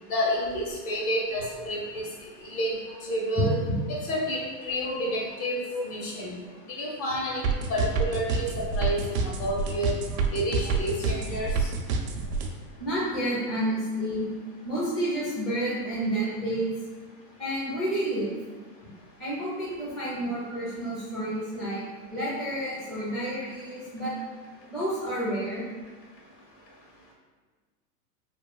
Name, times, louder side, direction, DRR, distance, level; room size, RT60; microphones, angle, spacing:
voice 1, 0.1-2.1 2.4-2.7 3.0-3.5 4.0-6.3 6.8-9.9 10.3-11.7, equal, 45° left, -3 dB, 0.9 m, -30 dB
voice 2, 3.4-3.8 5.7-5.8 9.1-9.2 12.8-14.3 14.6-16.7 17.4-18.3 19.2-21.8 22.1-24.1 24.7-25.6, right 1 dB, ahead, -10 dB, 0.4 m, -29 dB
sound 1, 7.4-12.5, right 5 dB, 85° right, 0.6 m, -27 dB
3.1 x 2.2 x 2.3 m, 1.4 s
hypercardioid pair, 115°, 48 cm